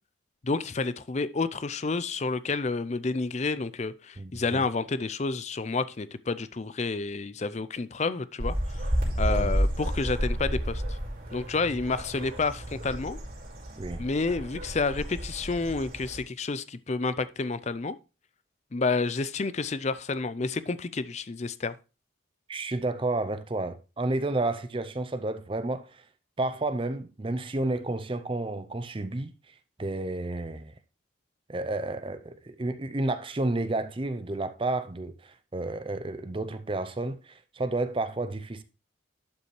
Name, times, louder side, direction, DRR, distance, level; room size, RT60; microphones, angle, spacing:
voice 1, 0.4-8.9 9.2-11.0 11.3-13.2 14.0-18.0 18.7-21.7, left 3 dB, 35° left, 0.5 m, -30 dB
voice 2, 4.2-4.6 9.3-9.5 13.8-14.0 22.5-26.0 26.4-29.3 29.8-30.7 31.5-38.6, right 2 dB, 25° right, 0.5 m, -31 dB
sound 1, 8.4-16.2, equal, 45° right, 4.0 m, -31 dB
11.5 x 5.5 x 3.2 m
head